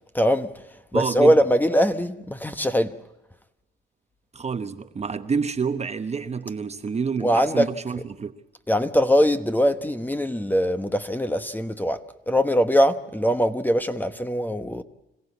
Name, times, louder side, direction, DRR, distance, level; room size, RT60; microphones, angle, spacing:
voice 1, 0.1-0.5 0.9-2.9 7.2-7.7 8.7-14.8, equal, 10° left, 1.2 m, -22 dB
voice 2, 0.9-1.3 4.3-8.3, right 5 dB, 35° right, 1.0 m, -28 dB
26.5 x 16.0 x 8.4 m
cardioid pair, 90°, 20 cm